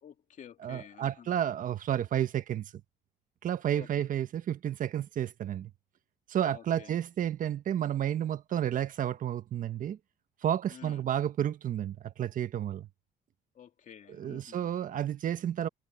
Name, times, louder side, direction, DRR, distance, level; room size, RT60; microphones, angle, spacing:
voice 1, 0.0-1.3 3.7-4.1 6.5-7.0 10.7-11.1 13.5-14.7, left 9 dB, 50° left, 2.4 m, -51 dB
voice 2, 0.6-2.7 3.4-5.7 6.3-10.0 10.4-12.9 14.2-15.7, right 10 dB, 50° right, 1.4 m, -31 dB
cardioid pair, 110°, 17 cm